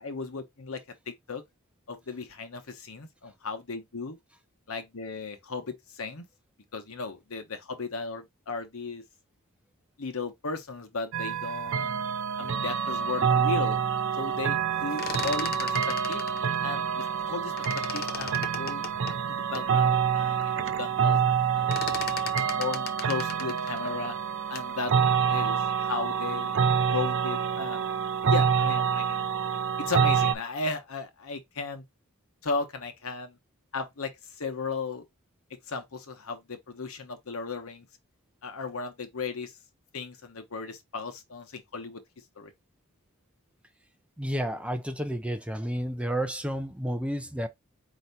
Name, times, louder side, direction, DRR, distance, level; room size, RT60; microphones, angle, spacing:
voice 1, 0.0-1.4 1.9-4.2 4.7-6.3 6.7-9.0 10.0-12.1 12.4-13.8 14.1-16.2 16.6-17.5 17.9-18.9 19.3-21.2 21.5-24.2 24.5-24.9 25.3-26.6 26.9-27.9 28.3-29.4 29.8-31.8 32.4-33.4 33.7-35.1 35.7-37.9 38.4-39.5 39.9-42.0 42.4-42.5, left 4 dB, 70° left, 1.0 m, -35 dB
sound 1, 11.1-30.4, right 7 dB, 60° right, 0.5 m, -27 dB
sound 2, 14.8-17.3 17.6-19.7 20.2-20.3 20.6-21.0 21.2-24.8, left 6 dB, 45° left, 0.6 m, -38 dB
voice 2, 44.2-47.5, equal, 5° right, 0.5 m, -31 dB
4.5 x 2.8 x 4.0 m
head